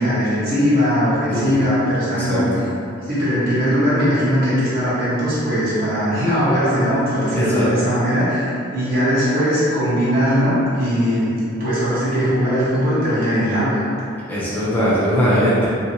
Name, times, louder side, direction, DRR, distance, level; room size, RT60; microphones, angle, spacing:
voice 1, 0.0-2.5 3.1-13.8, equal, 50° right, -10 dB, 1.1 m, -19 dB
voice 2, 2.2-2.6 7.3-7.7 14.3-15.7, equal, 10° left, -9 dB, 0.5 m, -20 dB
2.8 x 2.8 x 2.7 m, 2.5 s
head